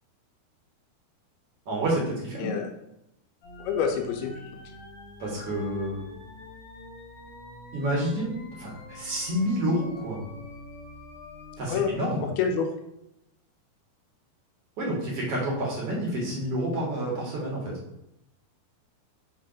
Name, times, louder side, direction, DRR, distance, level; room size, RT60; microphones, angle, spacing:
voice 1, 1.7-2.5 5.2-6.1 7.7-10.2 11.6-12.3 14.8-17.7, right 1 dB, 50° right, -3 dB, 2.0 m, -29 dB
voice 2, 2.4-2.7 3.6-4.4 11.7-12.0 12.4-12.7, left 6 dB, 85° left, 4 dB, 2.6 m, -27 dB
sound 1, 3.4-12.0, left 2 dB, 60° left, 1.9 m, -45 dB
6.3 x 3.3 x 4.9 m, 0.83 s
omnidirectional pair, 4.5 m